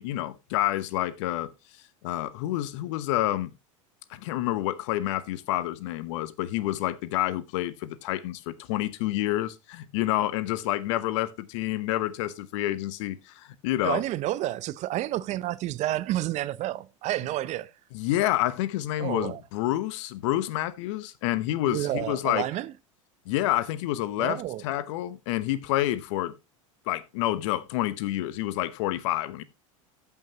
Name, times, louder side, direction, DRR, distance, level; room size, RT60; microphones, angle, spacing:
voice 1, 0.0-1.5 2.0-3.5 4.1-14.0 17.9-22.5 23.3-26.3 26.9-29.4, left 14 dB, 65° left, 0.9 m, -28 dB
voice 2, 13.8-17.7 19.0-19.4 21.7-22.7 24.2-24.6, right 14 dB, 45° right, 0.5 m, -30 dB
14.0 x 5.8 x 3.0 m
hypercardioid pair, 90°, 17 cm